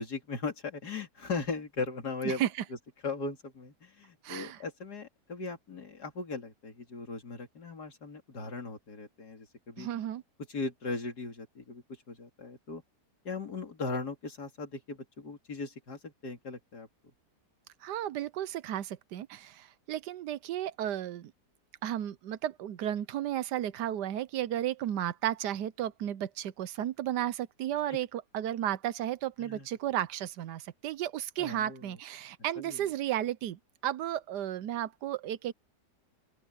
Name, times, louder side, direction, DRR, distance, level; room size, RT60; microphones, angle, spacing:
voice 1, 0.0-2.4 3.0-9.9 10.5-12.8 13.2-16.9 29.4-29.7 31.4-31.9 32.6-32.8, left 3 dB, 65° left, 3.3 m, -38 dB
voice 2, 4.2-4.6 9.8-10.2 17.8-21.3 21.8-35.5, right 11 dB, 80° right, 1.3 m, -33 dB
open air
omnidirectional pair, 1.8 m